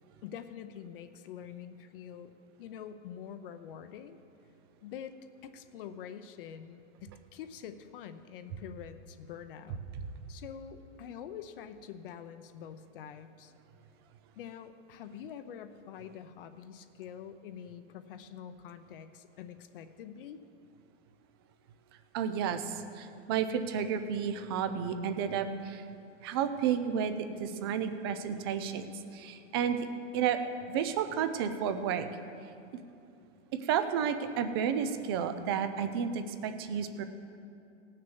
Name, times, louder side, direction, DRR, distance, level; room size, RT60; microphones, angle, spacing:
voice 1, 0.2-2.3 2.6-4.2 4.8-5.2 5.4-9.8 10.3-13.5 14.4-20.4, left 8 dB, 50° left, 10 dB, 0.7 m, -46 dB
voice 2, 22.1-25.8 26.2-27.1 27.4-29.9 30.1-30.4 30.7-32.1 33.6-37.0, right 8 dB, 20° right, 9 dB, 0.3 m, -31 dB
17.5 x 6.6 x 7.0 m, 2.6 s
supercardioid pair, 160°, 36 cm